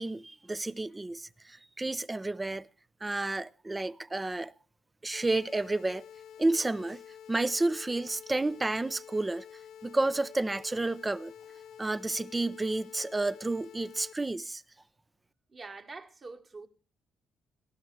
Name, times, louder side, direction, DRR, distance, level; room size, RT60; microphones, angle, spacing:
voice 1, 0.0-2.7 3.0-4.5 5.0-6.0 6.4-7.0 7.3-9.5 9.8-11.3 11.8-14.6, right 2 dB, 20° right, 0.5 m, -31 dB
sound 1, 5.1-14.1, left 9 dB, 70° left, 0.6 m, -49 dB
voice 2, 15.5-16.7, right 3 dB, 40° right, 1.8 m, -45 dB
18.5 x 12.5 x 3.3 m
cardioid pair, 90°, 0 cm